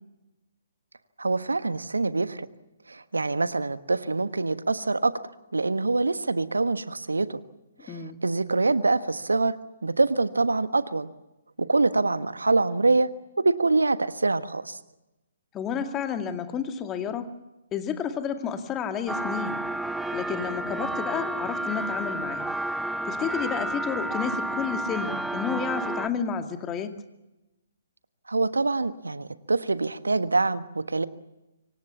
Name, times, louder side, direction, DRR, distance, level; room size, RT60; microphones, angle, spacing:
voice 1, 1.2-2.5 2.9-5.1 5.5-7.4 7.8-9.6 9.8-11.1 11.6-13.1 13.4-14.8 28.3-31.1, right 3 dB, 75° right, 13 dB, 1.4 m, -25 dB
voice 2, 7.9-8.2 15.5-17.3 17.7-19.6 20.1-22.5 23.0-26.9, left 7 dB, 20° left, 8 dB, 2.2 m, -31 dB
sound 1, 19.1-26.1, right 1 dB, 5° right, 0.9 m, -31 dB
26.5 x 24.0 x 7.1 m, 0.99 s
figure-of-eight pair, 130°, 0 cm